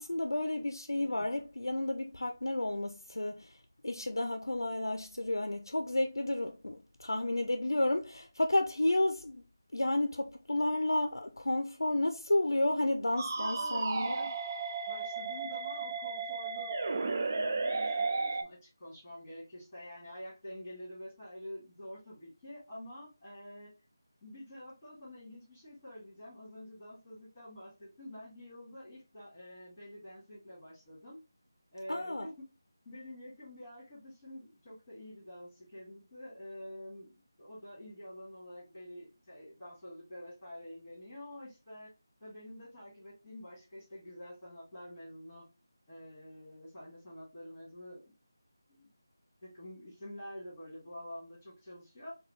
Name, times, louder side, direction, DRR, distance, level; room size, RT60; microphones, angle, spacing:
voice 1, 0.0-3.5 3.8-9.4 9.7-14.2 31.9-32.3, left 1 dB, 90° left, 0.4 m, -31 dB
sound 1, 13.2-18.4, right 4 dB, 40° right, 0.4 m, -34 dB
voice 2, 13.4-14.3 14.9-23.7 24.2-31.2 31.7-32.5 32.8-41.9 42.2-45.5 45.9-48.1 48.7-48.9 49.4-52.2, left 1 dB, 15° left, 2.3 m, -48 dB
4.6 x 2.2 x 3.1 m
figure-of-eight pair, 165°, 2 cm